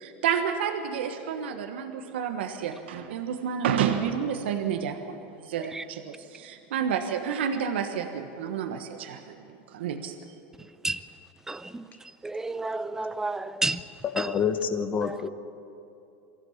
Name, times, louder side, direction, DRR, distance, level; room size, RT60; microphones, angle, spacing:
voice 1, 0.0-9.2 9.7-10.1, right 8 dB, 90° right, 1.3 m, -30 dB
voice 2, 11.5-11.8 12.2-13.8 14.2-14.3 15.0-15.3, right 2 dB, 10° right, 0.7 m, -31 dB
voice 3, 14.0-15.3, left 7 dB, 35° left, 1.1 m, -27 dB
23.0 x 15.5 x 7.2 m
supercardioid pair, 115°, 6 cm